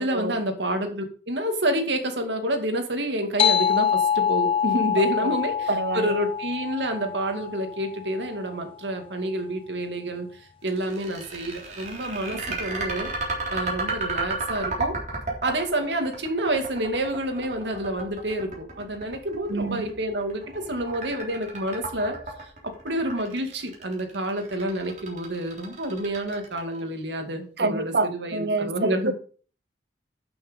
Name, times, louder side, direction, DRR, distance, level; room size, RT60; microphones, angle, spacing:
voice 1, 0.0-13.1 13.5-15.0 15.4-29.1, right 1 dB, 85° right, 2.3 m, -28 dB
sound 1, 3.4-8.4, left 8 dB, 30° left, 0.4 m, -25 dB
voice 2, 5.0-5.3 5.7-6.2 12.3-12.6 19.5-19.9 27.6-29.1, right 3 dB, 65° right, 0.9 m, -27 dB
sound 2, 10.7-26.8, right 3 dB, 45° right, 3.5 m, -33 dB
12.0 x 6.4 x 5.2 m
head